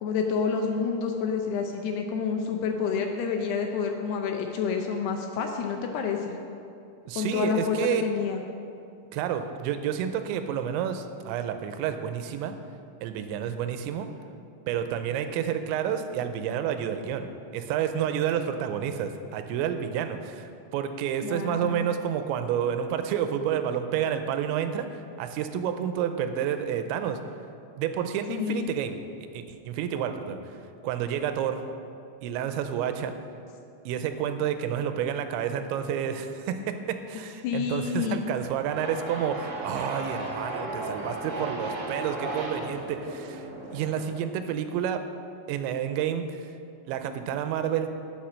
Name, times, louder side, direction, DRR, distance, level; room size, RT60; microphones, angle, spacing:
voice 1, 0.0-6.4 7.2-8.4 21.2-21.9 28.3-28.7 37.4-38.2, left 6 dB, 80° left, 3 dB, 2.5 m, -28 dB
voice 2, 7.1-8.1 9.1-12.6 13.0-14.1 14.7-17.3 17.5-27.2 27.8-29.0 29.3-30.5 30.8-31.6 32.2-33.1 33.9-45.0 45.5-46.5 46.9-47.9, right 9 dB, 85° right, 8 dB, 2.9 m, -30 dB
sound 1, 38.7-44.1, right 2 dB, 40° right, 3.2 m, -35 dB
11.5 x 7.4 x 6.3 m, 2.6 s
omnidirectional pair, 5.2 m